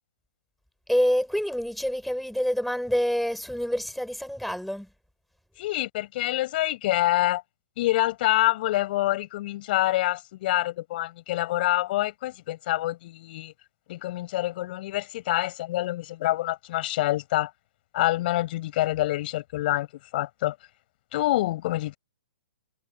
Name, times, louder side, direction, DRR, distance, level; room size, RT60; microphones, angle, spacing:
voice 1, 0.9-4.9, equal, ahead, 8.0 m, -27 dB
voice 2, 5.6-7.4 7.8-13.5 13.9-17.5 17.9-19.9 20.1-20.5 21.1-22.0, left 16 dB, 45° left, 6.9 m, -26 dB
figure-of-eight pair, 120°, 7 cm